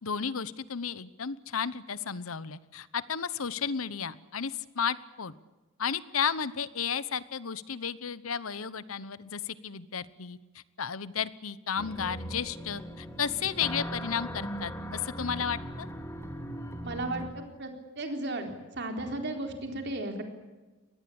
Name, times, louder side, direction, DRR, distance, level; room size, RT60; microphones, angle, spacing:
voice 1, 0.0-5.3 5.8-15.9, left 7 dB, 85° left, 17 dB, 1.0 m, -33 dB
sound 1, 11.8-17.3, equal, 15° left, 2.2 m, -39 dB
voice 2, 16.8-17.7 18.0-20.2, right 2 dB, 55° right, 4 dB, 4.0 m, -35 dB
24.0 x 19.5 x 8.7 m, 1.2 s
head